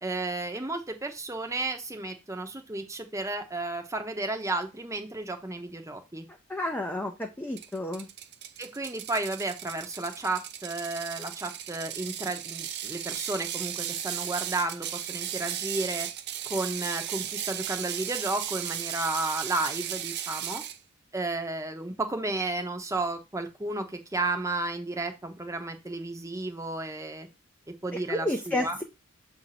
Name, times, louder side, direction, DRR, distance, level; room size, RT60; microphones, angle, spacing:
voice 1, 0.0-6.3 8.6-16.1 16.4-20.6 21.1-27.3 27.8-28.8, right 2 dB, 15° right, 5 dB, 0.8 m, -33 dB
voice 2, 6.5-8.1 27.9-28.8, left 1 dB, 10° left, 3 dB, 0.5 m, -31 dB
Ratchet pawl, 7.6-20.8, right 10 dB, 50° right, 0.6 m, -36 dB
7.0 x 2.7 x 5.8 m, 0.26 s
head